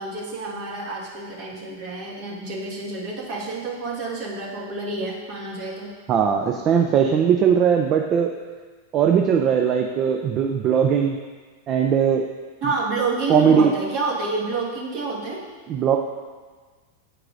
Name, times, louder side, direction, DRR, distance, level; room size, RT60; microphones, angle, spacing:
voice 1, 0.0-5.9 12.6-15.4, right 3 dB, 55° right, -4 dB, 1.6 m, -28 dB
voice 2, 6.1-8.3 8.9-11.2 11.7-12.2 13.3-13.7 15.7-16.0, right 7 dB, 40° right, 3 dB, 0.4 m, -19 dB
8.8 x 4.7 x 2.5 m, 1.4 s
hypercardioid pair, 105°, 0 cm